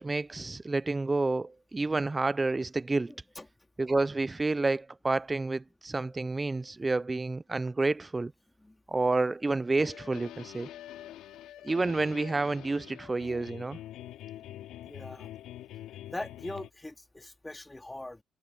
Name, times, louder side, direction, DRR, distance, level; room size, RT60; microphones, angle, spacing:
voice 1, 0.0-3.1 3.8-8.3 8.9-10.7 11.6-13.8, right 3 dB, 20° right, 0.5 m, -29 dB
sound 1, 9.8-16.7, left 13 dB, 85° left, 3.1 m, -45 dB
voice 2, 14.8-15.3 16.1-18.2, left 2 dB, 15° left, 3.2 m, -41 dB
cardioid pair, 90°, 0 cm